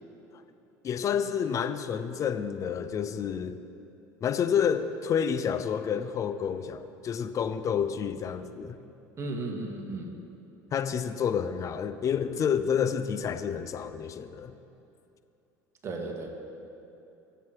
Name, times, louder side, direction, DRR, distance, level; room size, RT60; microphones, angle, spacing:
voice 1, 0.8-3.6 4.2-8.8 10.7-14.6, left 7 dB, 40° left, 11 dB, 0.8 m, -29 dB
voice 2, 9.2-10.1 15.8-16.3, right 2 dB, 35° right, 1 dB, 2.4 m, -34 dB
22.5 x 8.1 x 4.9 m, 2.9 s
supercardioid pair, 90°, 8 cm